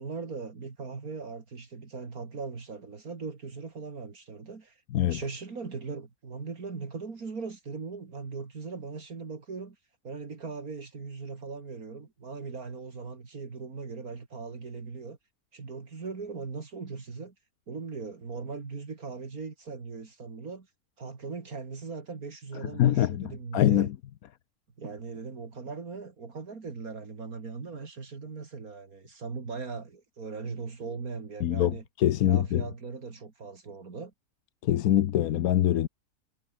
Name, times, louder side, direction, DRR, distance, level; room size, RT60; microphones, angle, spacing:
voice 1, 0.0-4.8 5.1-9.8 10.0-15.2 15.5-17.3 17.7-20.7 21.0-23.9 24.8-31.8 32.2-34.1, right 4 dB, 75° right, 3.0 m, -39 dB
voice 2, 22.6-24.0 31.4-32.6 34.6-35.9, left 12 dB, 80° left, 1.2 m, -24 dB
omnidirectional pair, 1.5 m